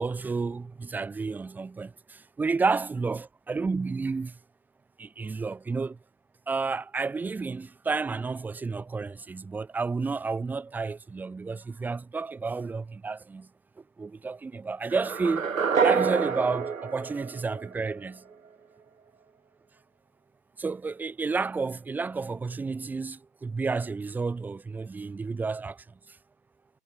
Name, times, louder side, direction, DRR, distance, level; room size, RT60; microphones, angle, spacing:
voice 1, 0.0-1.9 2.4-4.3 5.0-6.0 6.5-13.5 14.0-15.5 15.8-18.2 20.6-25.8, right 4 dB, 5° right, 6.0 m, -31 dB
sound 1, 14.9-18.0, right 6 dB, 55° right, 1.8 m, -27 dB
figure-of-eight pair, 150°, 47 cm